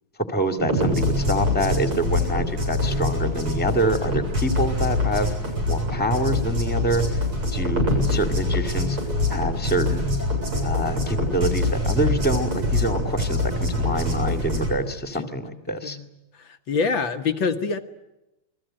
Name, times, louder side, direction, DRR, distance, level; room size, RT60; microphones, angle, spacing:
voice 1, 0.3-7.2 7.5-9.0 9.3-10.1 10.6-16.0, right 1 dB, 5° left, 8 dB, 2.0 m, -26 dB
sound 1, 0.6-14.7, left 1 dB, 80° right, 8.4 m, -24 dB
voice 2, 16.5-17.8, left 5 dB, 65° left, 5 dB, 2.0 m, -25 dB
28.5 x 21.5 x 8.8 m, 0.95 s
omnidirectional pair, 2.4 m